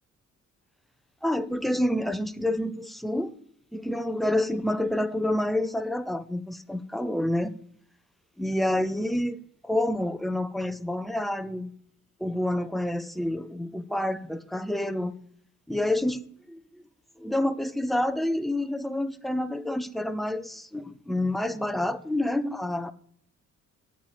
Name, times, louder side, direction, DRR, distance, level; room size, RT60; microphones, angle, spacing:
voice 1, 1.2-3.3 3.7-7.5 8.4-9.4 9.6-11.7 12.2-15.2 15.7-16.8 17.2-22.9, left 1 dB, ahead, 0.5 m, -28 dB
8.6 x 7.8 x 9.1 m
wide cardioid pair, 165°, 30 cm